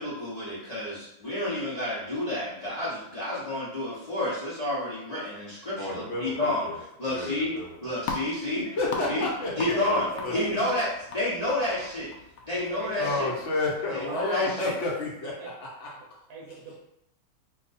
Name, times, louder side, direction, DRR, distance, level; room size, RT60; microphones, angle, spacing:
voice 1, 0.0-7.5 7.8-8.7 9.0-9.3 9.6-10.1 10.3-12.1 12.4-13.3 13.9-14.7, left 1 dB, 35° left, -10 dB, 0.7 m, -30 dB
voice 2, 5.8-6.8 7.1-7.7 8.7-10.6 13.0-15.9, left 2 dB, 50° left, -5 dB, 1.1 m, -31 dB
sound 1, 7.5-14.2, left 4 dB, 75° left, 0.7 m, -41 dB
voice 3, 8.8-10.8 12.6-13.4 13.8-14.2 15.2-15.5 16.0-16.8, right 3 dB, 65° right, -2 dB, 1.0 m, -41 dB
2.9 x 2.4 x 4.0 m, 0.83 s
omnidirectional pair, 1.9 m